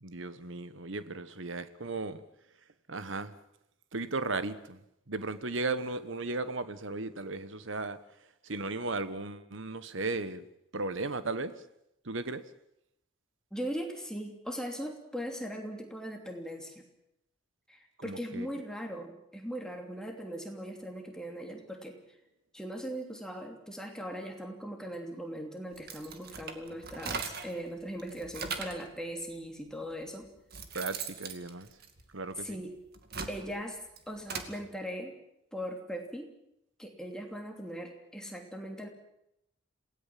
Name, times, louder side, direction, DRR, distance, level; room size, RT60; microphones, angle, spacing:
voice 1, 0.0-2.2 2.9-3.3 3.9-4.8 5.1-8.0 8.4-10.5 10.7-11.5 12.0-12.4 18.0-18.5 30.7-31.7 32.1-32.6, right 3 dB, 65° right, 1.3 m, -36 dB
voice 2, 13.5-16.8 17.7-22.0 22.5-30.3 32.4-32.7 33.3-33.8 34.1-35.1 35.5-36.3 36.8-38.9, equal, 5° left, 3.0 m, -39 dB
sound 1, 25.7-27.6 28.0-28.9 29.7-29.8 30.2-32.4 32.9-34.5, right 5 dB, 50° right, 2.3 m, -40 dB
27.5 x 18.0 x 7.5 m
head